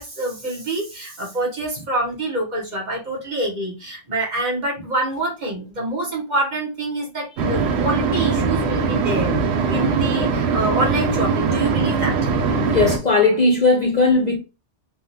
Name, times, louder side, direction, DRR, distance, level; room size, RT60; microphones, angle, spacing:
voice 1, 0.0-12.2, right 2 dB, 40° right, 1.1 m, -26 dB
sound 1, 7.4-13.0, right 4 dB, 70° right, 0.8 m, -21 dB
voice 2, 12.7-14.4, left 3 dB, 50° left, 0.5 m, -17 dB
3.4 x 2.2 x 2.8 m
omnidirectional pair, 1.2 m